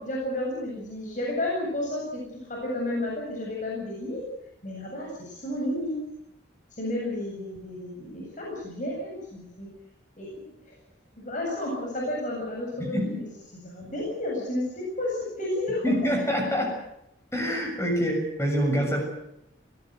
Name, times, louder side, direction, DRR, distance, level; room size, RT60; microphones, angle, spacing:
voice 1, 0.0-2.2 2.5-4.2 4.6-6.0 6.8-9.7 10.2-10.8 11.2-13.2 13.5-15.8, left 1 dB, 40° left, -2 dB, 7.8 m, -32 dB
voice 2, 15.8-16.8 17.3-19.0, equal, 15° left, 3 dB, 6.9 m, -25 dB
23.5 x 18.0 x 8.0 m, 0.81 s
head